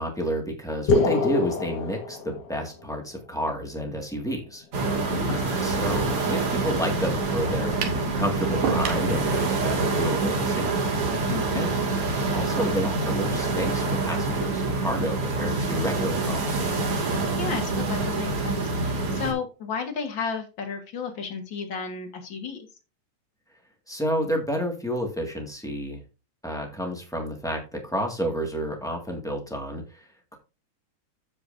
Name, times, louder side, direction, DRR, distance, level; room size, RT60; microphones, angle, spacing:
voice 1, 0.0-4.6 5.6-10.7 11.5-11.8 12.3-16.6 23.9-26.0 26.4-30.4, equal, 5° left, 1 dB, 0.5 m, -30 dB
sound 1, 0.9-2.8, left 3 dB, 75° left, 3.1 m, -25 dB
sound 2, 4.7-19.3, right 3 dB, 45° right, 2.8 m, -26 dB
voice 2, 5.1-5.6 11.3-11.7 17.4-22.6, left 5 dB, 45° left, 4 dB, 1.7 m, -33 dB
sound 3, 7.8-8.1 8.6-9.1, right 7 dB, 75° right, 2.9 m, -28 dB
14.0 x 5.2 x 2.6 m, 0.31 s
omnidirectional pair, 3.8 m